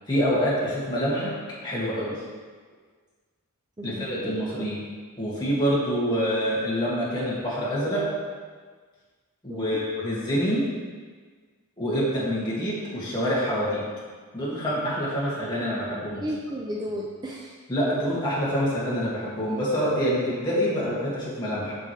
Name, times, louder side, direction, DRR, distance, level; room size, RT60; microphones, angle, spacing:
voice 1, 0.1-1.3 1.6-2.1 3.8-4.8 5.2-8.0 9.4-10.6 11.8-13.8 14.3-16.3 17.7-21.8, equal, 20° left, -8 dB, 2.0 m, -26 dB
voice 2, 3.8-4.7 9.5-9.9 16.2-17.6, equal, 20° right, -2 dB, 0.5 m, -34 dB
7.5 x 6.9 x 3.2 m, 1.5 s
head